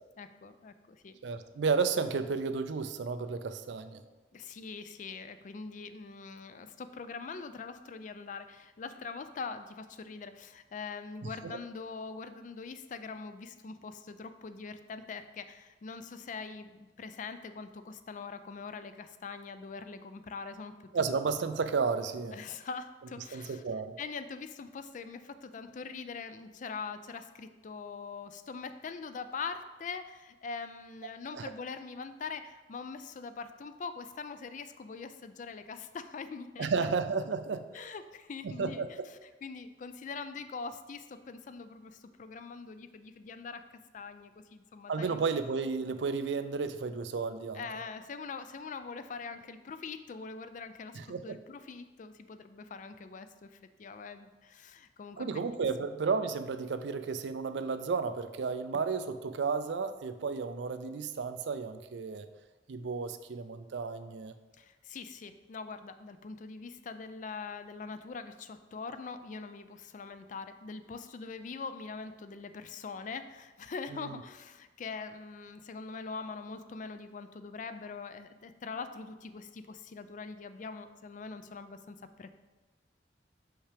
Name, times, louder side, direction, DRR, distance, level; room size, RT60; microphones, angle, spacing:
voice 1, 0.2-1.2 4.3-20.7 22.3-23.6 24.0-36.7 37.7-39.0 39.4-43.6 43.9-45.2 47.5-55.4 64.6-82.3, left 4 dB, 45° left, 10 dB, 0.4 m, -43 dB
voice 2, 1.2-4.0 11.4-11.6 20.9-22.4 23.3-24.0 31.3-31.5 36.6-37.9 38.4-39.1 44.9-47.6 50.9-51.4 55.2-62.3 62.7-64.3 73.9-74.1, right 5 dB, 80° right, 10 dB, 0.4 m, -33 dB
5.8 x 5.6 x 3.4 m, 1.2 s
head